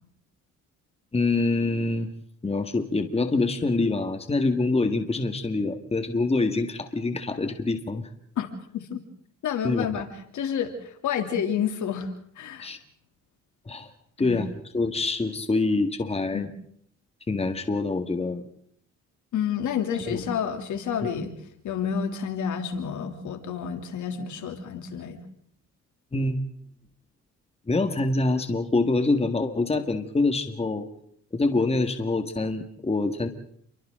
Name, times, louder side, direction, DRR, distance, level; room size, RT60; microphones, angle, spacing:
voice 1, 1.1-2.1 2.4-8.1 9.6-9.9 12.6-12.8 13.7-13.9 14.2-14.5 14.7-16.5 17.3-18.4 20.1-20.2 21.0-21.1 26.1-26.4 27.7-30.9 31.3-33.3, left 3 dB, 20° left, 7 dB, 1.9 m, -25 dB
voice 2, 9.4-10.1 10.3-12.1 12.4-12.7 14.2-14.5 16.3-16.5 19.3-21.3 21.6-25.2, left 8 dB, 75° left, 5 dB, 3.1 m, -29 dB
29.5 x 24.0 x 3.9 m, 0.65 s
cardioid pair, 90°, 30 cm